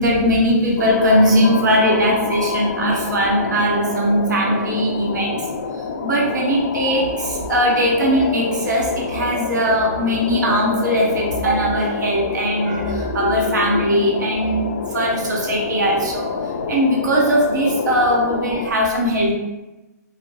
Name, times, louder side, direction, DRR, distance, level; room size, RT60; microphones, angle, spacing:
voice 1, 0.0-5.4 6.0-14.7 14.9-16.4 16.7-19.4, equal, 85° right, -2 dB, 1.0 m, -19 dB
sound 1, 0.8-18.7, left 5 dB, 55° left, 0.4 m, -27 dB
3.9 x 2.1 x 3.0 m, 1.1 s
hypercardioid pair, 170°, 9 cm